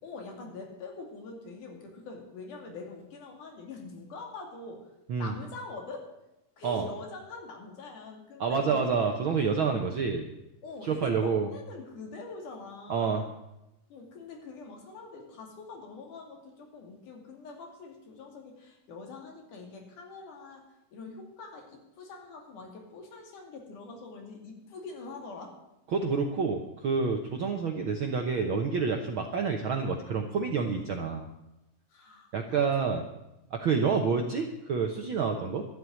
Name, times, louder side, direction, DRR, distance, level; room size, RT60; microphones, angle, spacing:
voice 1, 0.0-4.9 5.2-6.1 6.6-9.0 9.5-9.8 10.6-13.3 13.9-20.7 20.9-25.6 31.9-33.0, left 3 dB, 75° left, 1 dB, 3.9 m, -44 dB
voice 2, 8.4-10.2 10.8-11.5 12.9-13.2 25.9-31.3 32.3-33.0 33.5-35.6, right 5 dB, 65° right, 3 dB, 1.3 m, -28 dB
12.5 x 7.9 x 9.9 m, 0.92 s
omnidirectional pair, 3.6 m